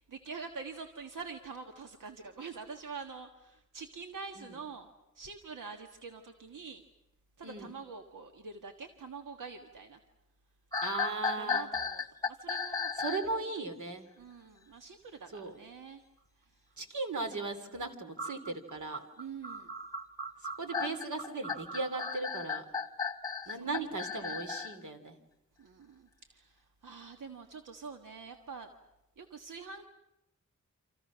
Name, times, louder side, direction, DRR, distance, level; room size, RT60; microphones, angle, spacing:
voice 1, 0.1-4.9 5.1-6.8 7.4-10.0 11.1-12.9 14.2-16.0 16.4-16.6 19.2-19.7 23.4-24.4 25.6-28.7 29.2-29.8, right 5 dB, 90° right, 5 dB, 1.6 m, -46 dB
sound 1, 10.7-13.3 18.2-24.8, left 4 dB, 10° left, 1.3 m, -35 dB
voice 2, 10.8-11.7 13.0-14.1 15.3-15.5 16.8-19.0 20.6-22.6 23.5-25.1, right 3 dB, 70° right, 6 dB, 3.2 m, -37 dB
28.5 x 27.0 x 6.3 m, 0.89 s
wide cardioid pair, 135°, 31 cm